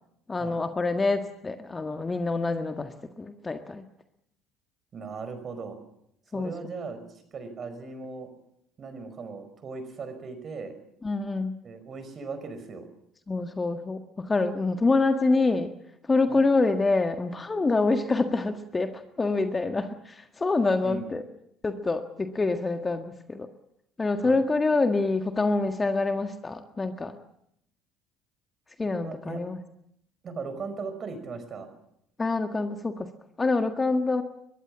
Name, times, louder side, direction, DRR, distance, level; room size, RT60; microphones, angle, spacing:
voice 1, 0.3-3.8 6.3-6.5 11.0-11.6 13.3-15.7 16.1-21.2 21.6-23.5 24.0-27.2 28.8-29.6 32.2-33.1 33.4-34.2, left 3 dB, 20° left, 7 dB, 1.7 m, -26 dB
voice 2, 4.9-5.8 6.3-7.0 7.3-8.3 8.8-10.8 11.6-12.9 16.3-16.5 20.8-21.0 24.2-24.4 29.0-29.4 30.2-31.7, right 4 dB, 35° right, 10 dB, 5.2 m, -38 dB
23.0 x 22.0 x 7.4 m, 0.74 s
figure-of-eight pair, 60°, 0 cm